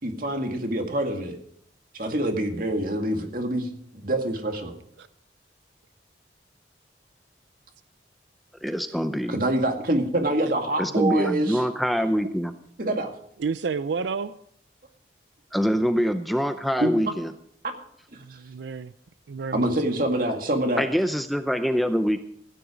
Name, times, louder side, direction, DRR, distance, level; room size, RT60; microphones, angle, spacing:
voice 1, 0.0-1.4 1.9-3.7 3.9-4.7 9.3-11.6 12.8-13.1 16.8-16.9 18.3-18.4 19.5-20.8, right 1 dB, 50° right, 4 dB, 2.1 m, -25 dB
voice 2, 8.6-9.4 10.8-12.5 15.5-17.3 20.8-22.2, equal, ahead, 8 dB, 0.6 m, -24 dB
voice 3, 13.4-14.4 18.2-18.9 19.3-19.7, right 5 dB, 85° right, 14 dB, 0.5 m, -30 dB
16.0 x 10.0 x 5.1 m, 0.68 s
head